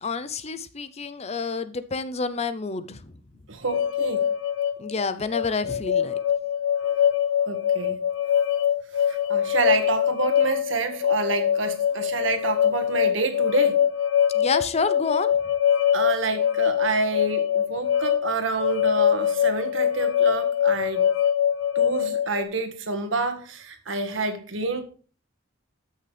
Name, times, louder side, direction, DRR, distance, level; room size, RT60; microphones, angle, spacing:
voice 1, 0.0-3.1 4.8-6.2 14.3-15.3, left 4 dB, 35° left, 14 dB, 0.6 m, -28 dB
voice 2, 3.5-4.2 7.5-8.0 9.1-13.8 15.9-21.1 21.7-24.8, right 3 dB, 85° right, 6 dB, 1.7 m, -28 dB
sound 1, 3.7-22.4, left 9 dB, 85° left, 0.6 m, -23 dB
13.0 x 6.4 x 3.4 m, 0.39 s
head